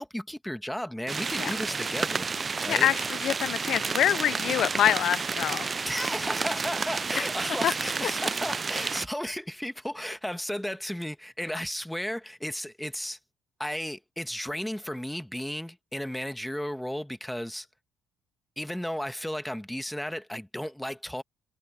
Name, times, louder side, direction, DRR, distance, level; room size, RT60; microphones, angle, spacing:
voice 1, 0.0-2.3 2.6-2.9 5.8-13.2 13.6-17.7 18.6-21.2, equal, 5° left, 1.3 m, -34 dB
sound 1, 1.1-9.1, right 4 dB, 30° right, 0.3 m, -30 dB
voice 2, 2.7-5.7 7.6-7.7, left 11 dB, 70° left, 0.4 m, -25 dB
supercardioid pair, 80°, 0 cm